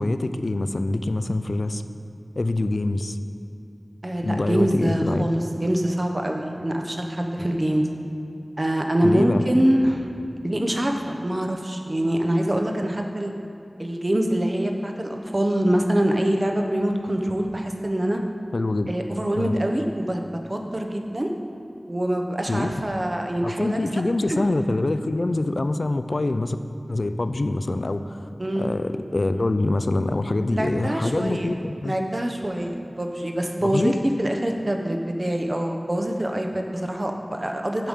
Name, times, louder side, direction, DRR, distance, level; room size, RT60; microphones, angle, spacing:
voice 1, 0.0-1.8 2.4-3.2 4.2-5.3 9.0-9.4 18.5-18.9 19.3-19.6 22.5-22.8 23.4-26.6 26.9-28.3 28.6-31.9 33.6-33.9, left 2 dB, 65° left, 10 dB, 0.3 m, -25 dB
voice 2, 4.0-7.8 8.6-10.1 10.4-13.3 13.8-18.2 18.9-20.2 20.5-21.3 21.9-23.8 24.3-24.4 28.4-28.7 30.5-31.5 31.8-37.9, right 1 dB, 40° right, 3 dB, 0.7 m, -24 dB
8.9 x 3.6 x 6.4 m, 2.6 s
wide cardioid pair, 50°, 0 cm